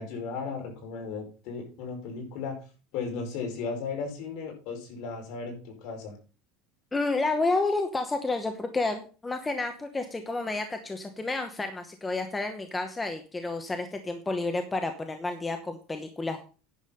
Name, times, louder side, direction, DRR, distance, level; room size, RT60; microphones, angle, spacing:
voice 1, 0.0-2.5 2.9-6.2, left 5 dB, 55° left, 2 dB, 5.0 m, -35 dB
voice 2, 6.9-16.4, left 3 dB, 10° left, 6 dB, 0.9 m, -30 dB
10.5 x 7.0 x 5.6 m, 0.35 s
cardioid pair, 170°, 0 cm